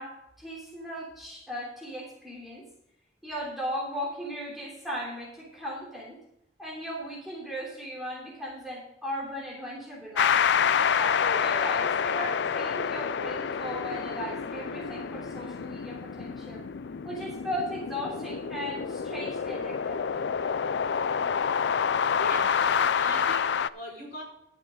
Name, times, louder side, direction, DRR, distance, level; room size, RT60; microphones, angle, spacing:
voice 1, 0.0-2.7 3.2-6.2 6.6-10.5 11.0-16.6 17.0-20.0, equal, ahead, -5 dB, 3.2 m, -37 dB
sound 1, 10.2-23.7, left 7 dB, 70° left, 0.4 m, -28 dB
voice 2, 21.7-22.5 22.9-24.2, equal, 55° left, -2 dB, 4.8 m, -40 dB
12.0 x 8.5 x 3.8 m, 0.80 s
head